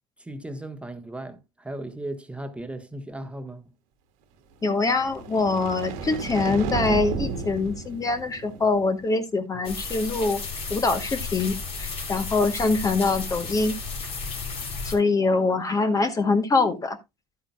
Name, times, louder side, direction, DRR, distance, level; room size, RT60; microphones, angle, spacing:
voice 1, 0.2-3.6, right 1 dB, 10° right, 1.2 m, -36 dB
voice 2, 4.6-10.4 10.7-13.7 14.8-17.0, left 3 dB, 25° left, 1.0 m, -24 dB
sound 1, 4.8-9.1, right 4 dB, 70° right, 1.5 m, -33 dB
sound 2, 9.6-15.0, left 4 dB, 50° left, 3.3 m, -33 dB
11.5 x 8.8 x 2.3 m
hypercardioid pair, 80°, 13 cm